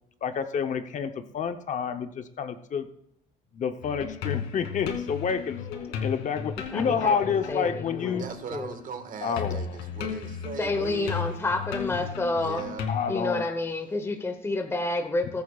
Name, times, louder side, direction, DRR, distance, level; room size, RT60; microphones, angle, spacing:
voice 1, 0.2-2.9 3.5-5.7 6.0-8.2 9.2-9.8 12.9-13.5, left 6 dB, 45° left, 7 dB, 0.8 m, -29 dB
sound 1, 3.8-8.9 9.1-13.1, left 7 dB, 85° left, 2.6 m, -35 dB
sound 2, 5.5-6.6 7.9-8.7 11.8-12.8, left 8 dB, 65° left, 2.6 m, -46 dB
voice 2, 6.7-8.2 8.5-8.7 10.6-12.6 13.1-15.4, left 2 dB, 15° left, 7 dB, 1.0 m, -29 dB
voice 3, 8.2-11.4 12.4-12.9, right 7 dB, 55° right, 7 dB, 1.7 m, -39 dB
21.5 x 8.6 x 2.4 m, 0.75 s
cardioid pair, 110°, 17 cm